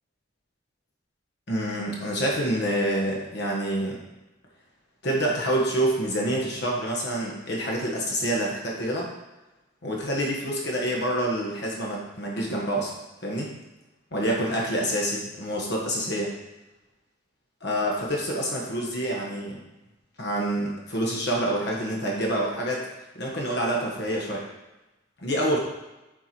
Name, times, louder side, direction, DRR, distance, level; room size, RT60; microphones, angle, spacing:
voice 1, 1.5-4.0 5.0-9.1 9.8-12.9 13.2-13.5 14.1-16.3 17.6-19.6 20.2-22.9 23.1-24.4 25.2-25.6, right 1 dB, 60° left, -2 dB, 1.4 m, -27 dB
7.4 x 4.6 x 4.5 m, 1.0 s
head